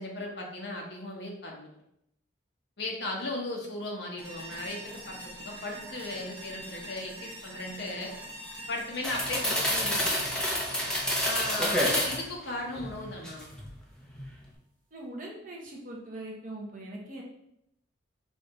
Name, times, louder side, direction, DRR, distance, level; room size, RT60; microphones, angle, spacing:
voice 1, 0.0-1.7 2.8-8.1 8.7-10.3 11.2-13.5, left 2 dB, 60° left, 0 dB, 1.0 m, -37 dB
sound 1, 4.2-13.2, right 1 dB, 25° right, 1.0 m, -45 dB
sound 2, 9.0-12.3 12.8-13.7 14.0-14.3, equal, 5° left, 0.6 m, -28 dB
voice 2, 14.9-17.2, right 1 dB, 40° right, -2 dB, 1.0 m, -41 dB
5.0 x 2.8 x 3.7 m, 0.78 s
head